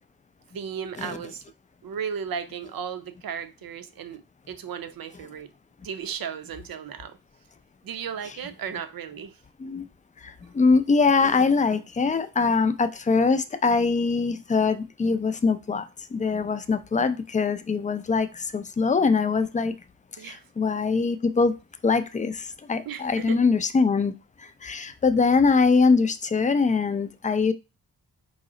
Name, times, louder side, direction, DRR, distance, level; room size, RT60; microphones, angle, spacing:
voice 1, 0.5-1.4 1.8-5.5 5.8-7.2 7.8-9.4 20.2-20.4 22.9-23.4, right 7 dB, 65° right, 0.6 m, -35 dB
voice 2, 10.2-19.7 20.2-21.6 21.8-24.1 24.4-27.5, left 4 dB, 20° left, 0.3 m, -23 dB
4.8 x 2.1 x 3.7 m
cardioid pair, 85°, 37 cm